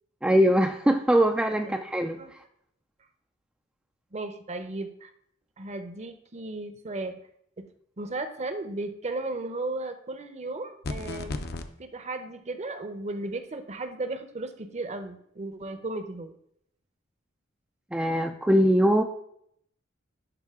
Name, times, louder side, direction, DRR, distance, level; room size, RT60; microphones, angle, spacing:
voice 1, 0.2-2.2 17.9-19.0, equal, 5° right, 4 dB, 0.3 m, -22 dB
voice 2, 4.1-5.1 5.6-7.2 7.6-7.7 8.0-11.3 11.8-16.4, right 2 dB, 35° right, 9 dB, 0.7 m, -35 dB
sound 1, 10.8-11.7, left 2 dB, 50° left, 0.6 m, -33 dB
11.0 x 3.8 x 3.6 m, 0.70 s
head